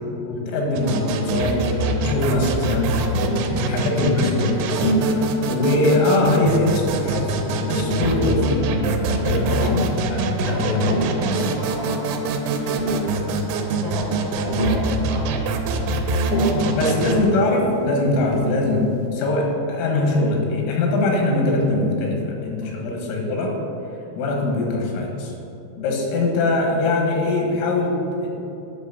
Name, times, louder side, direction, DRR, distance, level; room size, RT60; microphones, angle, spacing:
voice 1, 0.1-2.9 3.6-4.6 5.5-11.0 16.8-23.5 24.2-25.3 25.8-28.3, left 2 dB, 90° left, 0 dB, 4.2 m, -22 dB
sound 1, 0.8-17.2, right 2 dB, 90° right, 3.2 m, -24 dB
voice 2, 2.9-3.5 10.4-13.3 13.6-15.4 16.0-17.0 22.6-22.7 25.4-25.5, right 1 dB, 75° right, -4 dB, 2.0 m, -35 dB
Tap, 3.2-3.5 4.8-5.1 6.2-6.7 7.8-8.6 9.6-9.9 10.6-11.1 12.3-12.4 12.6-13.2 14.5-14.9 16.2-16.7 18.3-18.7, right 1 dB, 45° right, 2.9 m, -25 dB
9.4 x 6.2 x 6.8 m, 2.9 s
omnidirectional pair, 5.7 m